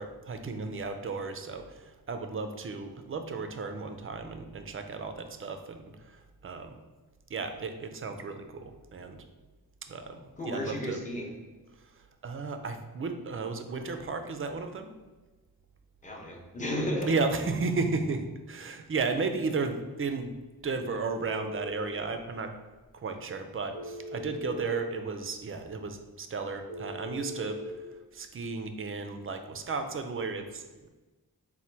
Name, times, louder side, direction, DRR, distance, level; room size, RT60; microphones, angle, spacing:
voice 1, 0.0-6.8 7.3-9.2 9.8-11.0 11.8-14.9 17.1-20.4 20.6-22.5 22.9-27.8 28.1-30.9, right 4 dB, 35° right, 7 dB, 0.4 m, -34 dB
voice 2, 10.4-11.3 16.0-17.1, left 1 dB, 20° left, -1 dB, 0.7 m, -33 dB
Telephone, 20.8-21.8 23.7-24.8 26.7-27.7, left 1 dB, 90° left, 0.9 m, -40 dB
4.2 x 2.2 x 4.5 m, 1.2 s
wide cardioid pair, 105°, 36 cm